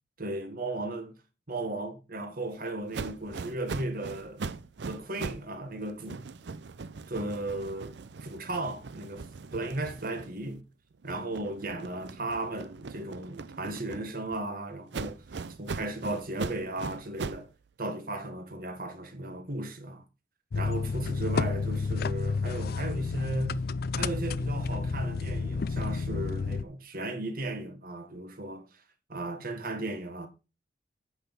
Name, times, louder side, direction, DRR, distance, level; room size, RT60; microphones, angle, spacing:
voice 1, 0.2-1.2 1.5-4.4 4.9-6.3 7.1-10.6 11.0-17.5 17.8-20.0 20.5-23.6 24.0-28.7 29.1-30.3, right 2 dB, 55° right, 1.7 m, -36 dB
sound 1, 2.9-5.5 5.8-10.6 11.0-14.4 14.9-17.5, right 4 dB, 80° right, 0.5 m, -40 dB
sound 2, 20.5-26.6, left 4 dB, 60° left, 0.4 m, -30 dB
8.3 x 5.9 x 5.4 m
head